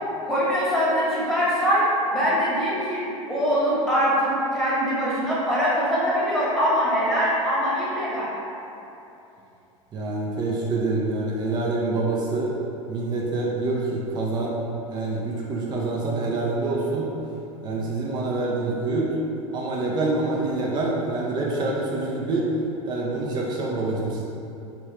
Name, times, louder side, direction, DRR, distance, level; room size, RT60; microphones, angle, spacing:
voice 1, 0.2-1.8 2.1-3.0 3.3-8.3, equal, ahead, -9 dB, 1.1 m, -23 dB
voice 2, 9.9-12.5 12.9-14.6 14.9-17.1 17.6-19.1 19.5-22.5 22.9-24.2, right 2 dB, 25° right, -3 dB, 0.5 m, -26 dB
2.9 x 2.6 x 3.3 m, 2.8 s
figure-of-eight pair, 80°, 18 cm